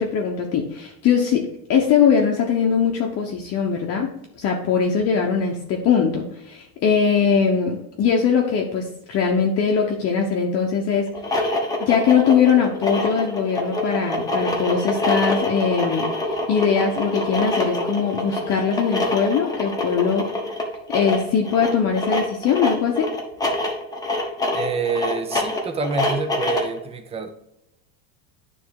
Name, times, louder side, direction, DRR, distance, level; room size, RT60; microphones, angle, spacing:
voice 1, 0.0-11.1 11.8-16.1 16.5-20.3 20.9-23.1, left 6 dB, 35° left, 0 dB, 0.9 m, -21 dB
sound 1, 11.1-26.8, left 1 dB, 10° left, 1.0 m, -25 dB
voice 2, 24.5-27.3, right 4 dB, 15° right, 7 dB, 0.6 m, -27 dB
9.5 x 3.5 x 4.7 m, 0.83 s
supercardioid pair, 150°, 42 cm